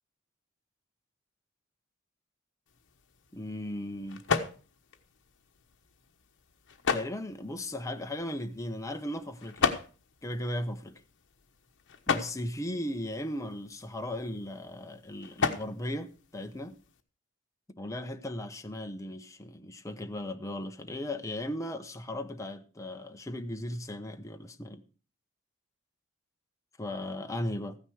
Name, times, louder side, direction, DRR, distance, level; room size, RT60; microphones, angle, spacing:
sound 1, 2.7-17.0, left 5 dB, 60° left, 1.2 m, -37 dB
voice 1, 3.3-4.2 6.9-9.7 10.2-11.0 12.1-16.8 17.7-24.8 26.8-27.8, left 1 dB, 15° left, 0.8 m, -37 dB
14.5 x 9.6 x 4.7 m
head